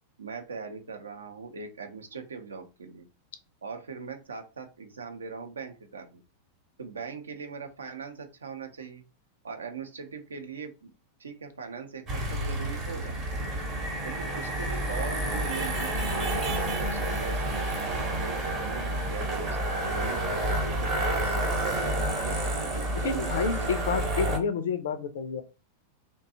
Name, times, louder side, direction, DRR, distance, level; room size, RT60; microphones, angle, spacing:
voice 1, 0.2-3.0 3.6-6.2 6.8-9.0 9.4-10.9 11.2-13.2 14.0-20.2 20.6-21.4 21.6-23.8, right 5 dB, 70° right, 6 dB, 0.4 m, -40 dB
sound 1, 12.1-24.4, right 1 dB, 35° right, 0.7 m, -29 dB
voice 2, 23.0-25.4, left 5 dB, 60° left, 10 dB, 0.4 m, -29 dB
2.6 x 2.2 x 2.6 m, 0.31 s
figure-of-eight pair, 90°, 0 cm